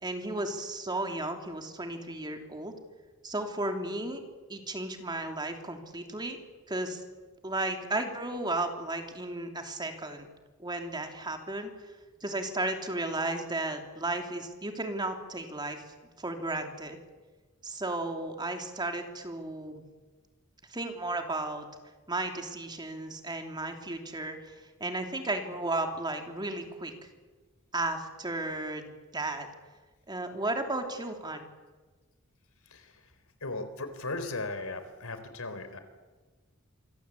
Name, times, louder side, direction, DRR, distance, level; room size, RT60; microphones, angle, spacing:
voice 1, 0.0-2.7 3.2-4.2 4.5-6.4 6.7-7.0 7.4-10.3 10.6-11.7 12.2-15.8 16.2-17.0 17.6-19.8 20.7-21.7 22.1-24.5 24.8-26.9 27.7-29.5 30.1-31.5, right 2 dB, 20° right, 4 dB, 3.0 m, -34 dB
voice 2, 33.4-35.8, left 2 dB, 80° left, 10 dB, 4.1 m, -37 dB
27.5 x 24.5 x 8.4 m, 1.3 s
head